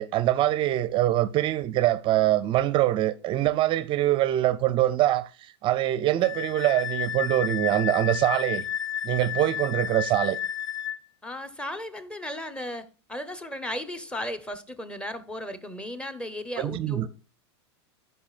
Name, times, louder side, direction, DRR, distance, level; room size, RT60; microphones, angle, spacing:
voice 1, 0.0-5.3 5.6-8.7 9.0-10.4 16.6-17.1, right 14 dB, 35° right, 0.5 m, -24 dB
Wind instrument woodwind instrument, 6.2-11.0, left 10 dB, 25° left, 0.4 m, -31 dB
voice 2, 11.2-17.1, left 1 dB, 5° left, 1.0 m, -35 dB
13.0 x 5.5 x 2.5 m
hypercardioid pair, 110°, 14 cm